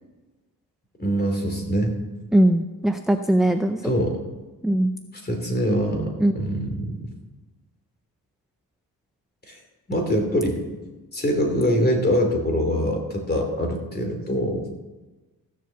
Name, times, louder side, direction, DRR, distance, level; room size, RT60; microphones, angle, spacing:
voice 1, 1.0-1.9 3.8-4.2 5.2-7.0 9.5-9.6 9.9-10.6 11.1-14.7, equal, 25° left, 3 dB, 2.9 m, -24 dB
voice 2, 2.3-3.8 4.6-4.9 6.2-6.3, right 1 dB, ahead, 7 dB, 0.5 m, -20 dB
15.0 x 7.5 x 7.0 m, 1.2 s
cardioid pair, 115°, 36 cm